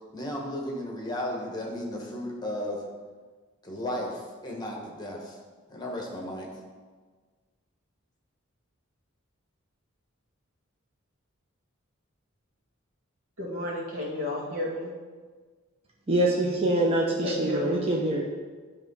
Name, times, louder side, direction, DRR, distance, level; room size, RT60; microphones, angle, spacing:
voice 1, 0.1-2.8 3.6-5.4 5.7-6.5, left 1 dB, 20° left, 0 dB, 1.2 m, -34 dB
voice 2, 13.4-14.9 17.2-17.8, left 1 dB, 80° right, -3 dB, 2.0 m, -32 dB
voice 3, 16.1-18.2, right 1 dB, 30° right, -3 dB, 0.9 m, -24 dB
10.5 x 3.7 x 5.4 m, 1.5 s
head